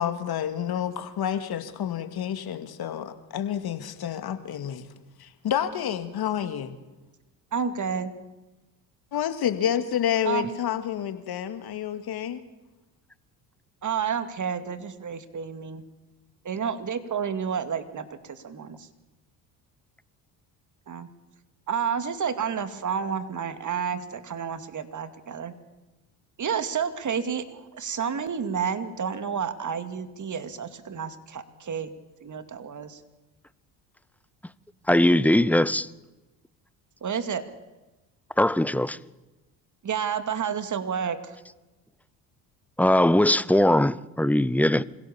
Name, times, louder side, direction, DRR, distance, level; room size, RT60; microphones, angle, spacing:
voice 1, 0.0-4.9 5.2-6.8 9.1-12.4, left 9 dB, 55° left, 2.2 m, -29 dB
voice 2, 7.5-8.1 10.2-10.6 13.8-15.8 16.4-18.9 20.9-21.1 21.7-25.5 26.4-31.9 32.2-33.0 37.0-37.4 39.8-41.4, right 7 dB, 40° right, 2.3 m, -30 dB
voice 3, 34.9-35.9 38.4-39.0 42.8-44.8, left 1 dB, 5° left, 0.6 m, -20 dB
26.0 x 17.0 x 7.2 m
hypercardioid pair, 65°, 45 cm